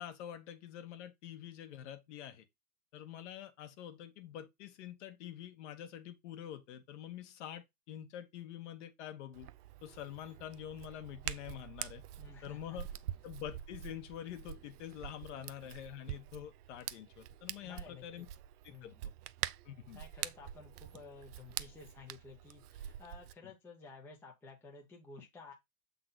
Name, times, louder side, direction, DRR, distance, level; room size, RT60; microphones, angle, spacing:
voice 1, 0.0-2.4 2.9-9.5 9.8-12.0 12.4-12.9 13.2-18.3 18.6-19.0 19.6-20.0 23.4-23.5, left 11 dB, 50° left, 1.3 m, -46 dB
Hands, 9.3-23.3, right 12 dB, 75° right, 0.7 m, -45 dB
voice 2, 12.2-12.8 15.3-15.5 17.6-18.3 18.7-19.0 19.9-25.5, left 4 dB, 5° left, 0.6 m, -53 dB
7.7 x 3.9 x 4.0 m
supercardioid pair, 165°, 46 cm